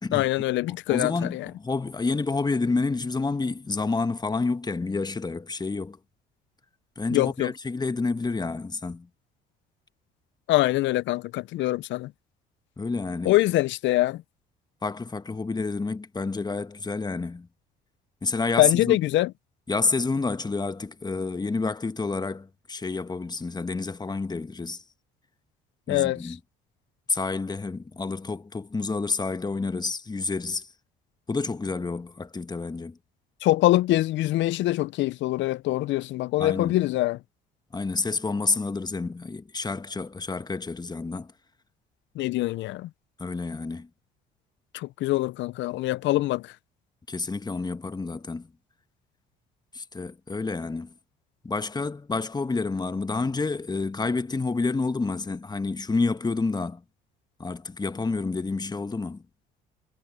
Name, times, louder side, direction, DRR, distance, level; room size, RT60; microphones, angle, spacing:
voice 1, 0.1-1.5 7.1-7.5 10.5-12.1 13.2-14.2 18.6-19.3 25.9-26.3 33.4-37.2 42.2-42.9 44.7-46.5, left 16 dB, 65° left, 0.7 m, -24 dB
voice 2, 0.7-6.0 7.0-9.1 12.8-13.3 14.8-17.5 18.2-19.0 19.7-24.8 25.9-26.4 27.1-30.7 31.3-33.0 36.4-36.8 37.7-41.3 43.2-43.9 47.1-48.5 49.7-50.9 51.4-56.8 57.4-59.2, left 3 dB, 20° left, 1.3 m, -29 dB
supercardioid pair, 65°, 21 cm